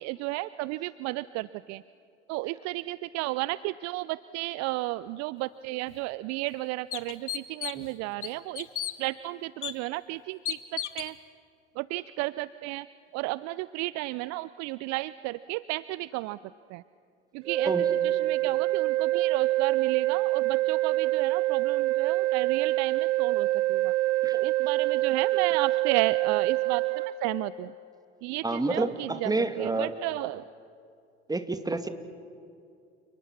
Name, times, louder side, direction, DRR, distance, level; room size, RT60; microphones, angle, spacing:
voice 1, 0.0-1.8 2.3-8.7 9.0-11.1 11.8-12.9 13.1-16.4 16.7-16.8 17.3-17.7 18.2-23.9 24.3-27.7 28.2-29.3 29.6-30.4, right 19 dB, 50° right, 17 dB, 0.6 m, -33 dB
sound 1, 5.9-6.0 6.5-6.6 6.9-7.9 8.2-8.9 9.6-9.7 10.5-11.1, left 11 dB, 80° left, 1.1 m, -33 dB
sound 2, 17.4-27.1, right 16 dB, 80° right, 1.5 m, -25 dB
voice 2, 28.4-29.9 31.3-31.9, right 2 dB, 10° right, 9 dB, 2.2 m, -29 dB
30.0 x 29.5 x 6.0 m, 2.5 s
figure-of-eight pair, 70°, 35 cm